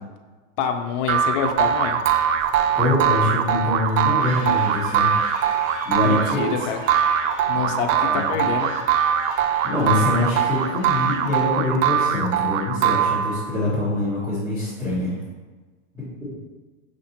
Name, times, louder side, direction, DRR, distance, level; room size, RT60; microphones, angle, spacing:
voice 1, 0.6-2.0 6.0-6.8 7.5-8.9, left 7 dB, 40° left, 5 dB, 0.5 m, -26 dB
sound 1, 1.1-13.6, right 9 dB, 75° right, 0.5 m, -22 dB
voice 2, 2.8-5.1 5.8-6.4 7.5-8.3 9.6-15.2 15.9-16.0, left 2 dB, 10° right, -12 dB, 1.3 m, -24 dB
sound 2, 3.8-11.7, right 1 dB, 35° right, 1.4 m, -38 dB
6.3 x 2.6 x 2.9 m, 1.3 s
supercardioid pair, 135°, 40 cm